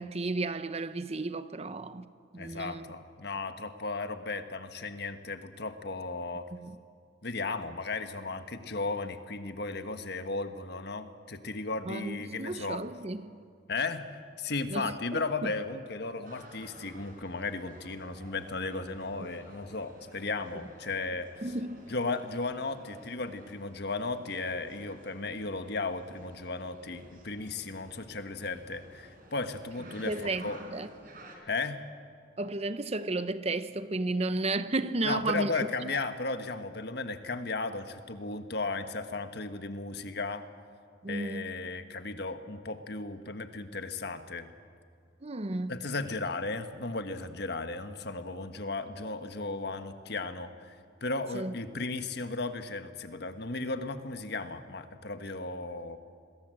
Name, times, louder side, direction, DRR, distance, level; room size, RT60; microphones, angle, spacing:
voice 1, 0.0-2.0 2.3-2.8 6.5-6.8 11.9-13.4 14.7-15.5 19.2-19.3 21.4-21.9 30.0-30.9 32.4-35.7 41.0-41.5 45.2-45.8 51.3-51.5, right 2 dB, 35° right, 0.8 m, -33 dB
voice 2, 2.4-6.5 7.2-12.8 13.7-21.3 21.9-30.6 31.5-31.8 35.0-40.4 41.1-44.5 45.7-56.0, left 3 dB, 60° left, 1.5 m, -35 dB
sound 1, 16.2-31.4, right 1 dB, 50° right, 4.5 m, -53 dB
27.5 x 22.0 x 7.8 m
head